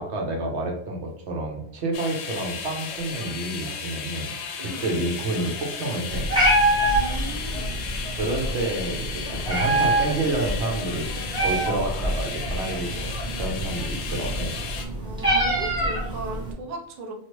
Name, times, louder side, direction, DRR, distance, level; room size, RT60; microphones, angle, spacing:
voice 1, 0.0-4.3 4.6-6.3 8.1-11.1 11.4-14.6, right 2 dB, 85° right, 1 dB, 1.0 m, -29 dB
sound 1, 1.9-14.9, left 5 dB, 85° left, 0.9 m, -35 dB
Meow, 6.1-16.5, right 1 dB, 5° right, 1.1 m, -26 dB
voice 2, 6.8-7.7 15.0-17.1, right 2 dB, 45° right, 1 dB, 0.6 m, -37 dB
3.1 x 2.5 x 3.0 m, 0.74 s
omnidirectional pair, 1.1 m